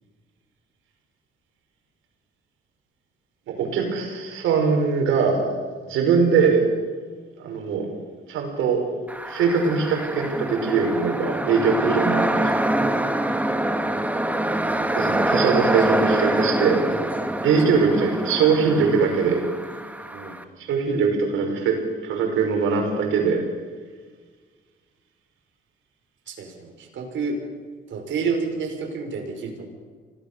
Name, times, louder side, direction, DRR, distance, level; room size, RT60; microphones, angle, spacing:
voice 1, 3.5-6.6 7.4-7.9 8.3-8.8 9.3-12.5 14.9-17.1 17.4-19.4 20.6-21.8 22.0-23.4, right 5 dB, 90° right, 3 dB, 5.7 m, -22 dB
sound 1, 9.1-20.4, right 1 dB, 5° right, 2.0 m, -25 dB
voice 2, 26.3-27.4 27.9-29.6, right 5 dB, 70° right, 2 dB, 5.8 m, -29 dB
25.0 x 18.0 x 7.0 m, 1.5 s
cardioid pair, 90°, 20 cm